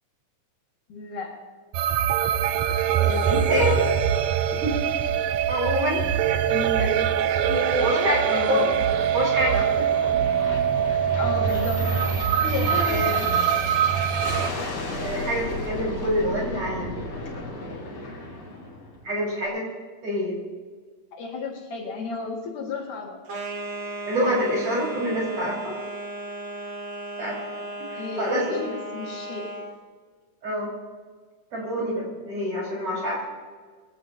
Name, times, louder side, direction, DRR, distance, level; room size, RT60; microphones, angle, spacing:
voice 1, 0.9-1.4 6.4-7.2 7.5-8.8 11.2-11.9 12.4-13.4 21.1-23.2 27.9-29.6, left 2 dB, 70° left, 0 dB, 3.6 m, -31 dB
sound 1, 1.7-14.5, right 9 dB, 80° right, 1.6 m, -23 dB
voice 2, 3.0-3.9 4.6-4.8 5.5-6.4 6.8-6.9 7.8-8.6 9.1-9.9 12.8-13.2 15.0-17.0 19.0-19.6 20.0-20.3 24.0-25.8 27.2-27.4 27.9-28.5 30.4-30.7 31.5-33.2, equal, 45° right, -4 dB, 6.5 m, -26 dB
Aircraft, 6.4-19.2, left 2 dB, 50° left, 3.8 m, -35 dB
sound 2, 23.3-29.8, right 2 dB, 65° right, 3.0 m, -35 dB
22.5 x 17.5 x 3.0 m, 1.5 s
omnidirectional pair, 3.8 m